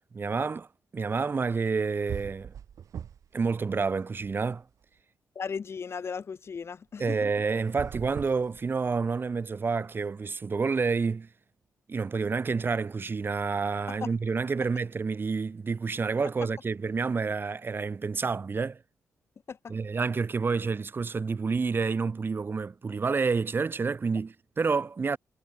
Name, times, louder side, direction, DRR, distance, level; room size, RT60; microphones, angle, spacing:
voice 1, 0.1-0.7 0.9-2.5 3.3-4.6 7.0-11.3 11.9-18.8 19.7-25.2, right 4 dB, 40° right, 0.7 m, -29 dB
sound 1, 1.7-1.8 2.1-3.4 3.7-4.8 7.6-9.2, right 8 dB, 70° right, 2.3 m, -41 dB
voice 2, 5.4-7.2 13.9-14.1 19.5-19.7, left 6 dB, 45° left, 0.6 m, -36 dB
supercardioid pair, 60°, 6 cm